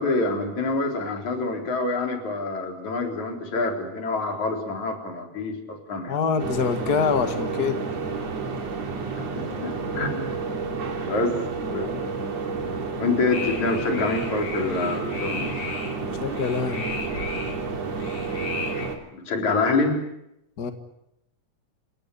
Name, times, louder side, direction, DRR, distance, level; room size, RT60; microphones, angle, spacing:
voice 1, 0.0-6.2 9.2-10.6 11.1-11.4 11.7-12.1 13.0-15.6 19.1-20.0, left 3 dB, 75° left, 3 dB, 5.3 m, -26 dB
voice 2, 6.1-7.8 16.0-16.9 20.6-20.7, left 6 dB, 40° left, 8 dB, 1.9 m, -25 dB
sound 1, 6.4-19.0, right 4 dB, 60° right, 3.9 m, -30 dB
sound 2, 13.3-18.9, left 3 dB, 55° left, 4.1 m, -35 dB
29.0 x 17.0 x 9.9 m, 0.84 s
omnidirectional pair, 3.3 m